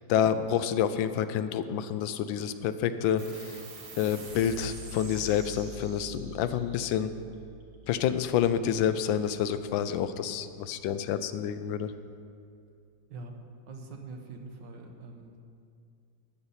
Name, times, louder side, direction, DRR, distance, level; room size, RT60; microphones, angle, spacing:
voice 1, 0.0-3.6 4.0-7.1 7.9-11.9, left 9 dB, 85° left, 11 dB, 1.3 m, -28 dB
sound 1, 3.2-10.1, right 2 dB, 55° right, 2.0 m, -46 dB
voice 2, 13.1-13.4 13.7-15.4, right 3 dB, 70° right, 3 dB, 1.7 m, -44 dB
13.0 x 9.5 x 4.2 m, 2.4 s
omnidirectional pair, 2.1 m